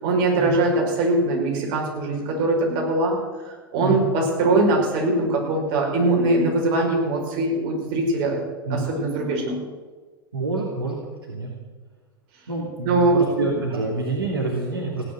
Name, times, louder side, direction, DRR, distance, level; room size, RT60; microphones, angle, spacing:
voice 1, 0.0-3.2 3.7-8.4 8.7-9.6 12.8-13.1, right 2 dB, 45° right, 0 dB, 5.7 m, -21 dB
voice 2, 10.3-11.0 11.3-11.5 12.5-15.1, right 2 dB, 75° right, -2 dB, 2.8 m, -27 dB
16.5 x 10.5 x 7.7 m, 1.3 s
figure-of-eight pair, 85°, 12 cm